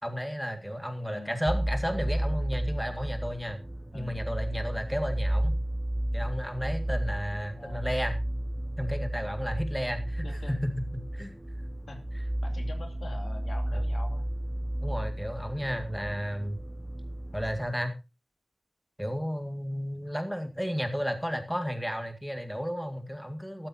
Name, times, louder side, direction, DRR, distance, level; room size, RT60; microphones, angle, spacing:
voice 1, 0.0-3.6 3.9-5.5 6.1-8.2 8.8-11.4 14.8-16.6 17.3-18.0 19.0-23.7, equal, ahead, 6 dB, 2.1 m, -33 dB
sound 1, 1.5-17.6, right 1 dB, 15° right, 0.8 m, -32 dB
voice 2, 7.6-7.9 10.2-10.6 11.9-12.0 12.4-14.3, left 2 dB, 80° left, 4 dB, 2.8 m, -44 dB
14.0 x 13.0 x 2.8 m, 0.27 s
wide cardioid pair, 95°, 0 cm